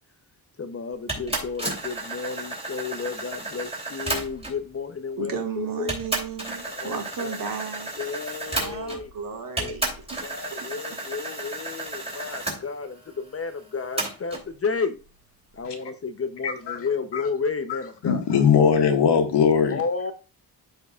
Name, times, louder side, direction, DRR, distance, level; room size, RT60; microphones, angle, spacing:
voice 1, 0.6-5.9 6.6-7.4 8.0-9.1 9.6-9.8 10.2-15.0 15.5-18.3 19.7-20.1, left 5 dB, 35° left, 0.7 m, -32 dB
sound 1, 1.1-4.7 5.4-5.5 5.9-9.2 9.6-12.6 14.0-14.5, right 2 dB, 15° right, 3.1 m, -32 dB
voice 2, 5.2-7.9 8.5-9.9, right 6 dB, 55° right, 1.8 m, -34 dB
voice 3, 16.4-16.8 17.1-17.2 17.7-17.8 18.0-19.8, left 7 dB, 85° left, 1.7 m, -20 dB
13.0 x 4.6 x 2.4 m
wide cardioid pair, 135°, 40 cm